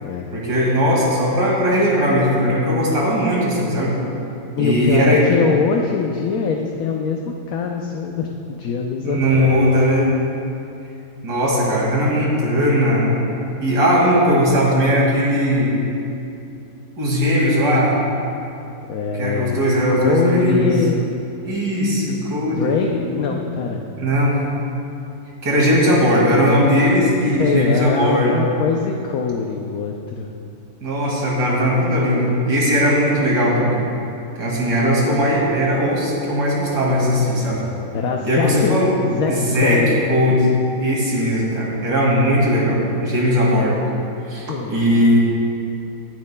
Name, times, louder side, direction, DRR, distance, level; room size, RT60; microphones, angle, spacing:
voice 1, 0.3-3.9 4.6-5.2 9.0-10.1 11.2-13.1 13.6-15.7 17.0-18.0 19.2-20.7 21.4-23.3 24.0-24.4 25.4-28.4 30.8-33.8 34.4-37.6 38.2-38.9 39.3-39.8 40.1-40.5 40.8-43.9 44.3-45.2, equal, 80° right, -4 dB, 2.8 m, -18 dB
voice 2, 4.6-9.9 18.9-21.1 22.5-23.9 27.4-30.3 37.9-38.7 39.0-40.0 44.5-44.7, left 5 dB, 65° left, 1 dB, 1.0 m, -23 dB
18.5 x 10.5 x 2.2 m, 2.8 s
omnidirectional pair, 1.8 m